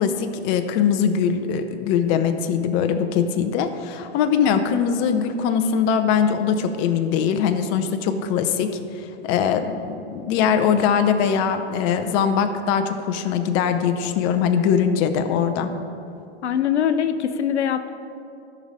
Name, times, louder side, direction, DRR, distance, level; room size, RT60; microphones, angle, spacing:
voice 1, 0.0-15.7, left 7 dB, 35° left, 8 dB, 0.7 m, -22 dB
voice 2, 16.4-17.9, left 8 dB, 90° left, 10 dB, 0.6 m, -22 dB
13.0 x 5.3 x 4.1 m, 2.7 s
hypercardioid pair, 115°, 33 cm